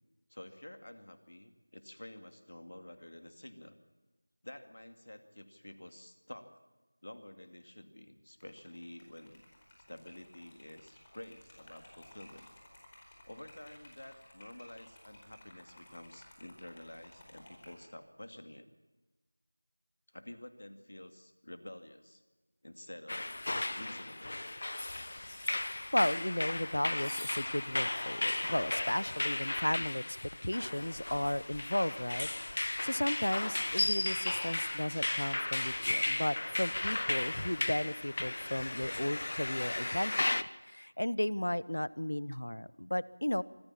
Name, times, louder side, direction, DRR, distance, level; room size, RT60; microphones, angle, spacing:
voice 1, 0.3-3.8 4.4-6.6 7.0-9.4 9.9-12.5 13.2-18.7 20.1-22.2 22.6-23.3 23.7-24.4 29.7-29.9, left 1 dB, 65° left, 8 dB, 2.3 m, -50 dB
Liquid, 8.3-17.9, left 1 dB, 25° left, 4.6 m, -57 dB
sound 1, 23.1-40.4, left 2 dB, 45° left, 0.8 m, -35 dB
voice 2, 25.9-30.0 30.4-43.4, left 1 dB, 85° left, 20 dB, 0.8 m, -34 dB
25.0 x 15.0 x 7.3 m, 1.2 s
figure-of-eight pair, 175°, 0 cm